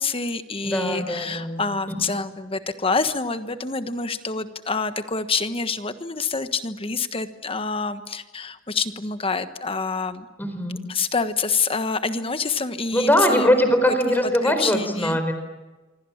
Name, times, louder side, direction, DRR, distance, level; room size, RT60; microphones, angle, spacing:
voice 1, 0.0-10.3 10.9-13.5 14.0-14.1 14.4-15.2, left 4 dB, 30° left, 10 dB, 1.4 m, -27 dB
voice 2, 0.6-1.6 1.9-2.1 10.4-10.8 12.9-15.3, equal, 10° left, 7 dB, 4.4 m, -21 dB
27.0 x 25.0 x 7.4 m, 1.2 s
head